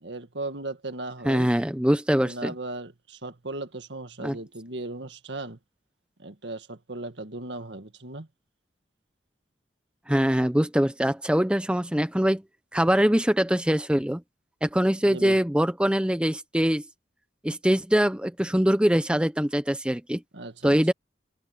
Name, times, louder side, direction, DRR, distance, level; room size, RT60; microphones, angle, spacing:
voice 1, 0.0-1.5 2.2-5.6 6.2-8.3 15.1-15.4 20.3-20.9, right 2 dB, 75° right, 1.9 m, -37 dB
voice 2, 1.2-2.5 4.2-4.4 10.1-12.4 12.7-14.2 14.6-16.8 17.4-20.2 20.6-20.9, equal, 5° right, 0.6 m, -23 dB
head